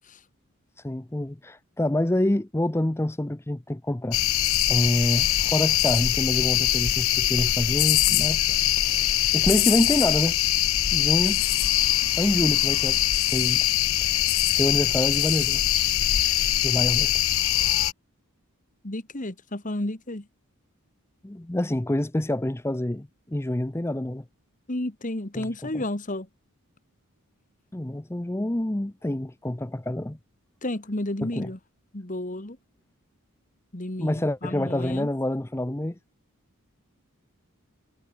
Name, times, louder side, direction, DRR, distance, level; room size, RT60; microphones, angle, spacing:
voice 1, 0.8-4.2 4.7-8.5 9.1-10.4 10.9-11.4 12.2-13.7 14.0-14.2 14.6-15.6 16.3-16.4 16.6-17.1 21.2-24.2 25.3-25.8 27.7-30.2 31.2-31.5 34.0-36.0, left 1 dB, 10° left, 0.5 m, -27 dB
sound 1, 4.1-17.9, left 13 dB, 65° left, 0.8 m, -23 dB
voice 2, 18.8-20.3 24.7-26.3 30.6-31.6 31.9-32.6 33.7-35.1, left 1 dB, 35° left, 1.7 m, -32 dB
head